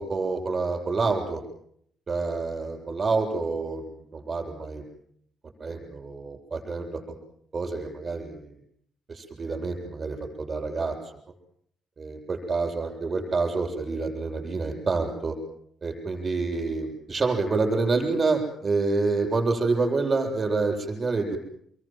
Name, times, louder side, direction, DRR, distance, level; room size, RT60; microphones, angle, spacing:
voice 1, 0.0-1.4 2.1-4.8 5.6-7.0 7.5-8.5 9.1-10.9 12.0-15.4 15.8-21.4, right 3 dB, 25° right, 3 dB, 7.5 m, -27 dB
26.5 x 22.0 x 7.7 m, 0.68 s
cardioid pair, 140°, 0 cm